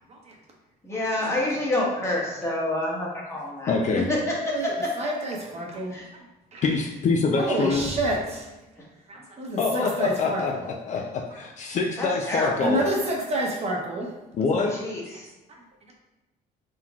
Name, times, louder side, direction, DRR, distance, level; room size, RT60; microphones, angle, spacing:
voice 1, 0.8-3.7 4.1-4.2 5.9-6.1 9.8-9.9 12.0-12.6 14.7-15.3, left 1 dB, 15° left, -4 dB, 1.3 m, -28 dB
voice 2, 3.7-4.1 6.6-7.8 9.6-12.8 14.4-14.7, left 4 dB, 45° left, 2 dB, 0.4 m, -25 dB
voice 3, 4.4-6.0 6.5-6.6 7.3-8.5 9.1-10.6 12.6-14.1, right 1 dB, 40° right, -1 dB, 0.9 m, -28 dB
4.1 x 3.9 x 2.4 m, 1.0 s
cardioid pair, 110°, 17 cm